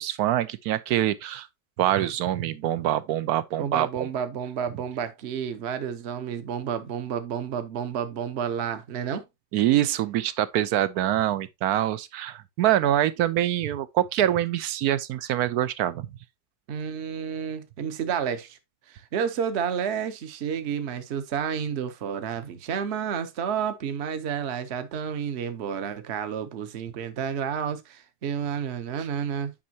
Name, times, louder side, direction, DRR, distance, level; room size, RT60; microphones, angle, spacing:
voice 1, 0.0-1.5 1.8-3.9 9.5-16.1, right 12 dB, 70° right, 1.0 m, -25 dB
voice 2, 3.6-9.3 16.7-18.6 18.9-29.5, right 7 dB, 45° right, 1.0 m, -30 dB
8.6 x 5.5 x 2.8 m
omnidirectional pair, 1.8 m